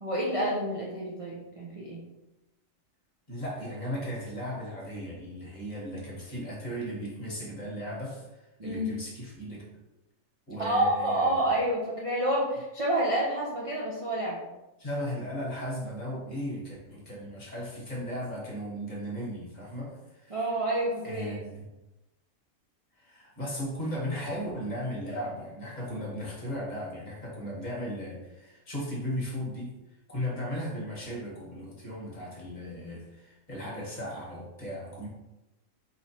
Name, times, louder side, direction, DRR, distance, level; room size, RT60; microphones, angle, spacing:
voice 1, 0.0-2.0 8.6-8.9 10.6-14.4 20.3-21.4, right 1 dB, 40° right, -4 dB, 0.5 m, -28 dB
voice 2, 3.3-9.6 10.5-11.6 14.8-20.4 21.0-21.6 23.0-29.7 30.1-35.1, equal, 35° left, -5 dB, 1.4 m, -36 dB
4.7 x 3.1 x 2.8 m, 0.99 s
omnidirectional pair, 1.4 m